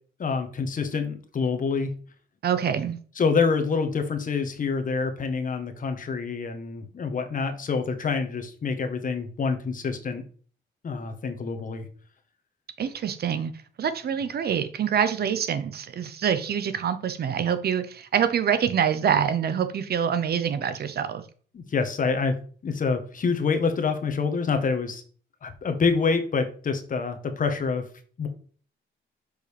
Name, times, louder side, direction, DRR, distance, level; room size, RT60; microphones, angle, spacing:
voice 1, 0.2-1.9 3.2-10.2 10.8-11.8 21.5-22.4 22.6-25.0 25.4-27.8 28.2-28.3, left 5 dB, 40° left, 1.2 m, -26 dB
voice 2, 2.4-3.0 12.8-13.5 13.8-21.2, right 8 dB, 55° right, 0.8 m, -25 dB
6.4 x 5.1 x 3.4 m
cardioid pair, 90°, 20 cm